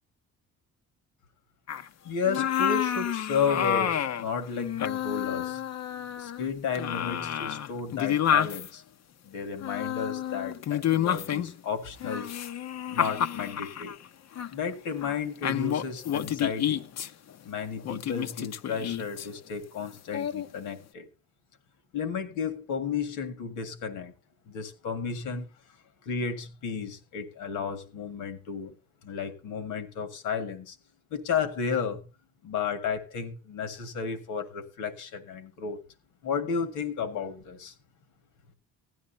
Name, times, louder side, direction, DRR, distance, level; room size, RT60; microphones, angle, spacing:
sound 1, 1.7-1.9 2.3-4.2 4.6-6.5 6.7-8.7 9.6-11.6 12.0-13.9 14.4-14.5 15.0-15.1 15.4-17.1 17.8-19.3 20.1-20.5, left 10 dB, 60° left, 0.8 m, -29 dB
voice 1, 2.0-5.6 6.2-8.8 9.2-12.3 12.9-14.0 14.5-16.8 17.4-21.1 21.9-24.1 24.5-25.5 26.0-28.7 29.0-30.8 31.1-32.1 32.4-35.8 36.2-37.7, left 6 dB, 90° left, 2.0 m, -33 dB
16.0 x 12.5 x 2.8 m
cardioid pair, 90°, 30 cm